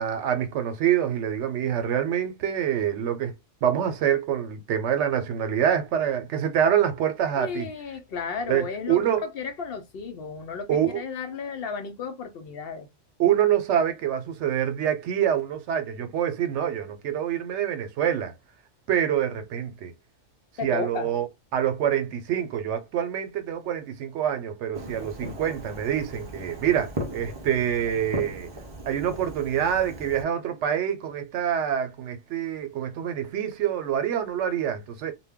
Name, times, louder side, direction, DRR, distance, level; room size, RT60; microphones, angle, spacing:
voice 1, 0.0-3.3 3.6-7.7 8.5-9.2 10.7-11.0 13.2-18.3 18.9-19.9 20.6-21.3 21.5-28.5 28.8-35.1, right 9 dB, 75° right, 0.9 m, -26 dB
voice 2, 7.4-9.0 9.3-12.9 20.6-21.1, left 5 dB, 65° left, 0.7 m, -33 dB
Fireworks, 24.7-30.2, right 1 dB, 30° right, 0.5 m, -37 dB
2.2 x 2.2 x 3.4 m
omnidirectional pair, 1.2 m